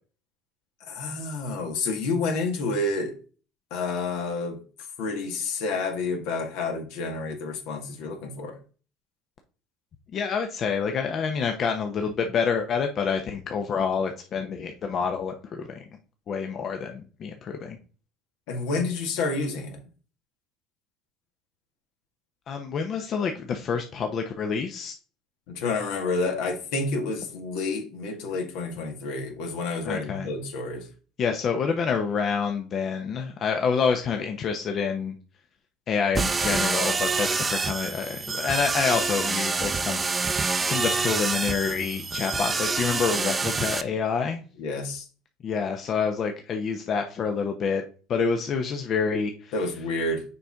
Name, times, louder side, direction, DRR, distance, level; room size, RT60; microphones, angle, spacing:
voice 1, 0.9-3.1 3.7-4.6 5.0-8.6 18.5-19.8 25.5-30.9 44.6-45.0 49.5-50.2, left 3 dB, 75° left, 3 dB, 1.7 m, -29 dB
voice 2, 10.1-15.9 16.3-17.8 22.5-24.9 29.8-30.3 31.2-35.2 35.9-44.4 45.4-49.5, left 6 dB, 45° left, 4 dB, 0.9 m, -27 dB
sound 1, 36.1-43.8, right 4 dB, 25° right, 0.6 m, -27 dB
6.7 x 4.4 x 3.6 m, 0.37 s
hypercardioid pair, 80°, 0 cm